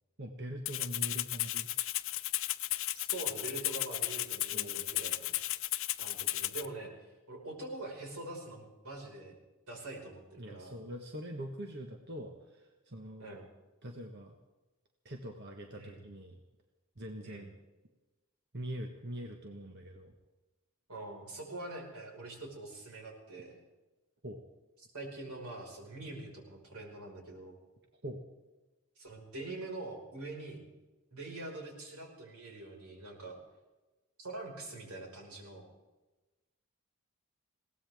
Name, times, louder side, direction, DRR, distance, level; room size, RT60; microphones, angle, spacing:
voice 1, 0.2-1.7 4.5-4.9 10.4-13.4 13.8-14.4 15.0-16.4 17.0-17.5 18.5-20.1 24.2-24.4 28.0-28.2, equal, 50° right, 3 dB, 1.5 m, -43 dB
Rattle (instrument), 0.7-6.7, left 16 dB, 60° left, 0.6 m, -34 dB
voice 2, 2.9-5.4 6.0-9.4 9.7-10.8 13.2-13.5 15.8-16.0 17.2-17.5 20.9-23.6 24.9-27.6 29.0-30.6 31.1-33.4 34.2-35.7, right 2 dB, 90° right, 0 dB, 5.2 m, -44 dB
21.0 x 17.5 x 3.6 m, 1.1 s
head